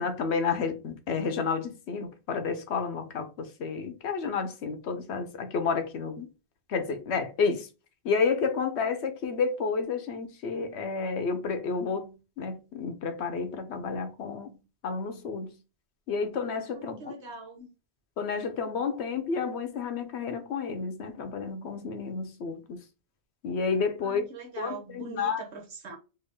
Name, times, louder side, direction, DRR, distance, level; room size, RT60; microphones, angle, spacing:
voice 1, 0.0-6.3 6.7-7.7 8.0-15.6 16.1-17.0 18.2-22.8 23.4-24.2 24.6-25.4, left 5 dB, 80° left, 1.0 m, -30 dB
voice 2, 16.7-17.7 24.0-26.0, right 4 dB, 90° right, 1.4 m, -42 dB
3.5 x 2.4 x 3.4 m
omnidirectional pair, 1.1 m